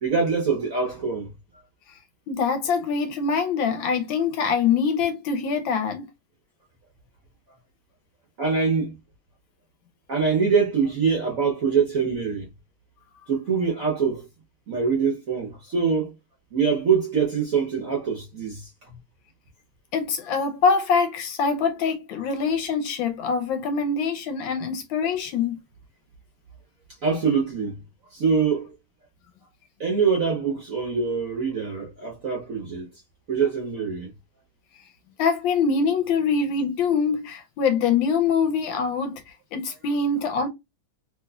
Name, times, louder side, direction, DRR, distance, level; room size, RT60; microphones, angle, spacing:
voice 1, 0.0-1.3 8.4-8.9 10.1-12.5 13.3-14.2 14.7-16.1 16.5-18.6 27.0-27.8 28.1-28.7 29.8-32.9 33.3-34.1, right 5 dB, 60° right, 0.9 m, -24 dB
voice 2, 2.3-6.1 19.9-25.6 35.2-40.5, left 5 dB, 75° left, 1.2 m, -24 dB
3.2 x 2.9 x 2.3 m
omnidirectional pair, 2.4 m